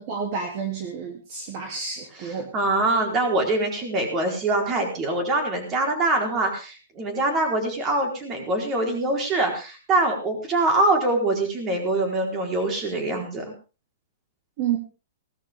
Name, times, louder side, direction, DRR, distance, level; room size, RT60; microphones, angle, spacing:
voice 1, 0.0-2.5 14.6-14.8, right 7 dB, 40° right, 3 dB, 3.0 m, -30 dB
voice 2, 2.1-13.5, right 2 dB, 20° right, 3 dB, 4.2 m, -24 dB
18.0 x 13.5 x 3.7 m, 0.34 s
hypercardioid pair, 160°, 0 cm